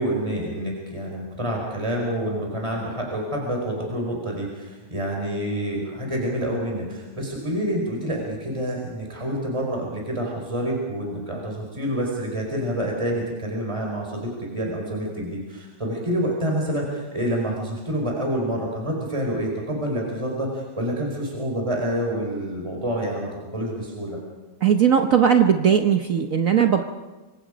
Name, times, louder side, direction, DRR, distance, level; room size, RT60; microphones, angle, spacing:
voice 1, 0.0-24.2, right 1 dB, 15° right, 0 dB, 4.9 m, -27 dB
voice 2, 24.6-26.8, right 8 dB, 55° right, 5 dB, 1.2 m, -18 dB
26.0 x 26.0 x 5.1 m, 1.2 s
omnidirectional pair, 2.0 m